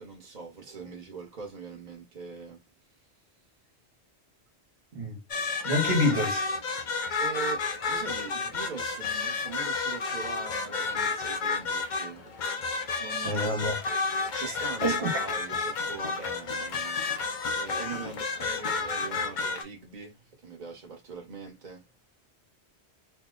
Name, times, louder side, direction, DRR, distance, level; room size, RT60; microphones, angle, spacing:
voice 1, 0.0-2.6 7.2-12.3 13.0-13.5 14.3-17.0 17.6-21.8, right 5 dB, 45° right, 1.1 m, -41 dB
sound 1, 5.3-19.6, left 4 dB, 55° left, 0.6 m, -31 dB
voice 2, 5.6-6.5 13.2-13.8 14.4-15.1, left 1 dB, 65° right, 1.2 m, -28 dB
2.8 x 2.0 x 3.7 m
omnidirectional pair, 1.1 m